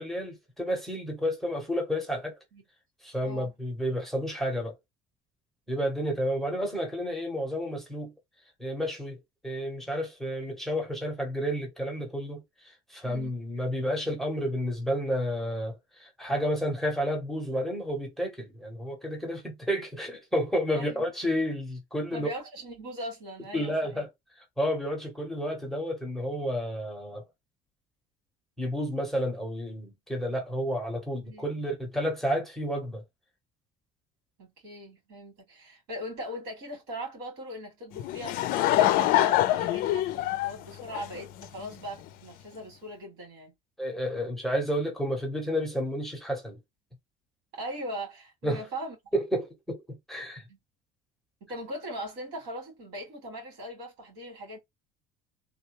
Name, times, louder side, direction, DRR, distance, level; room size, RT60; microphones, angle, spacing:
voice 1, 0.0-2.3 3.0-4.8 5.7-8.1 8.6-9.2 9.4-12.4 12.9-22.3 23.5-24.1 24.6-27.2 28.6-33.0 43.8-46.6 48.4-48.6 49.1-50.4, equal, ahead, 0.9 m, -31 dB
voice 2, 3.2-3.5 13.0-13.3 20.7-21.0 22.1-24.0 31.3-31.6 34.4-43.5 47.5-49.0 50.5-50.6 51.4-54.6, equal, 85° right, 2.4 m, -40 dB
Laughter / Crowd, 38.0-41.7, left 14 dB, 60° left, 0.4 m, -25 dB
3.4 x 2.2 x 2.9 m
cardioid pair, 165°, 17 cm